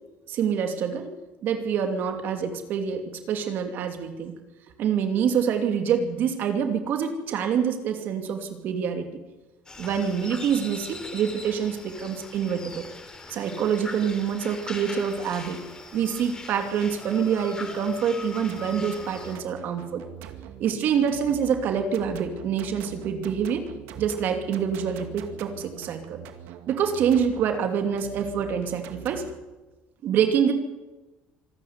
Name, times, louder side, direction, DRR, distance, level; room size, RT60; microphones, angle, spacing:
voice 1, 0.3-1.1 1.4-4.4 4.8-9.1 9.8-12.9 13.3-15.6 15.9-20.0 20.6-23.7 24.0-26.2 26.7-29.3 30.0-30.5, right 7 dB, 60° right, 6 dB, 2.7 m, -26 dB
sound 1, 9.7-19.4, left 3 dB, 20° left, 3.8 m, -41 dB
sound 2, 18.5-29.3, right 10 dB, 80° right, 2.3 m, -43 dB
25.5 x 13.5 x 9.6 m, 1.1 s
cardioid pair, 120°, 4 cm